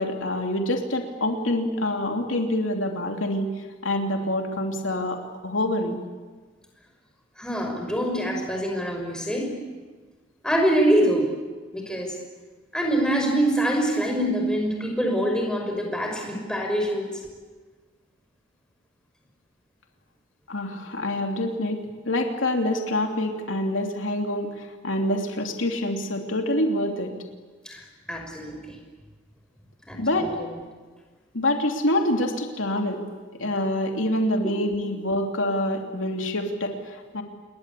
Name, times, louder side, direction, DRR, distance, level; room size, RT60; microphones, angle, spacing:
voice 1, 0.0-3.5 3.8-5.2 5.4-6.0 20.5-27.1 30.0-30.3 31.3-33.0 33.4-37.2, left 1 dB, 90° left, 3 dB, 3.1 m, -26 dB
voice 2, 7.4-9.6 10.4-11.3 11.7-12.1 12.7-17.1 27.7-28.8 29.8-30.5 34.4-34.6, right 1 dB, 5° left, 1 dB, 5.7 m, -25 dB
28.5 x 22.0 x 8.5 m, 1.4 s
head